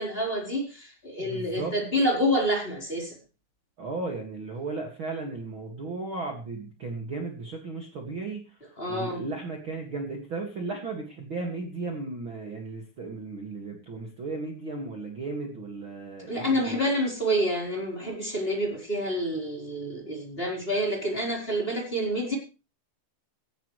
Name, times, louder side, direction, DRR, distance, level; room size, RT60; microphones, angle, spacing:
voice 1, 0.0-3.1 8.8-9.2 16.3-22.3, equal, 10° left, -1 dB, 4.0 m, -28 dB
voice 2, 1.2-1.7 3.8-16.8, right 3 dB, 50° right, 2 dB, 1.5 m, -35 dB
17.5 x 15.0 x 3.3 m, 0.32 s
omnidirectional pair, 5.9 m